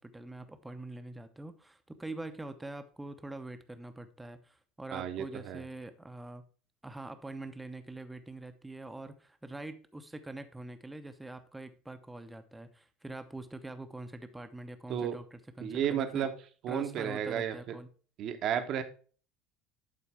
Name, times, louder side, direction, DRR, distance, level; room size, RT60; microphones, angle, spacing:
voice 1, 0.0-6.4 6.8-16.3 16.7-17.9, right 2 dB, 10° right, 8 dB, 0.8 m, -44 dB
voice 2, 4.9-5.6 14.9-15.2 15.6-16.3 16.6-17.7 18.2-18.8, right 9 dB, 50° right, 8 dB, 1.0 m, -33 dB
11.5 x 4.3 x 3.3 m, 0.40 s
figure-of-eight pair, 65°, 0 cm